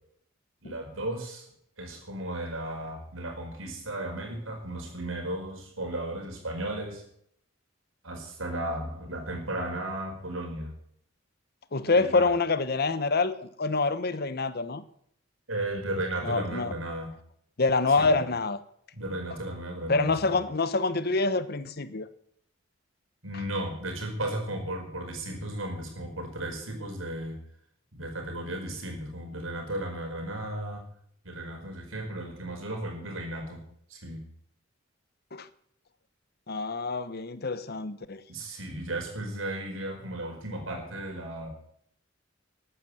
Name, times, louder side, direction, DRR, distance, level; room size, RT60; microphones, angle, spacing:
voice 1, 0.6-1.5 1.8-7.0 8.0-10.7 11.9-12.3 15.5-17.1 18.0-18.2 18.9-20.3 23.2-27.4 27.9-30.9 31.2-33.6 33.9-34.2 38.3-41.5, right 1 dB, 85° right, 5.0 m, -35 dB
voice 2, 11.7-14.8 16.2-16.7 17.6-18.6 19.9-22.1 35.3-35.5 36.5-38.2, left 3 dB, 50° left, 1.0 m, -26 dB
14.0 x 10.0 x 7.9 m
head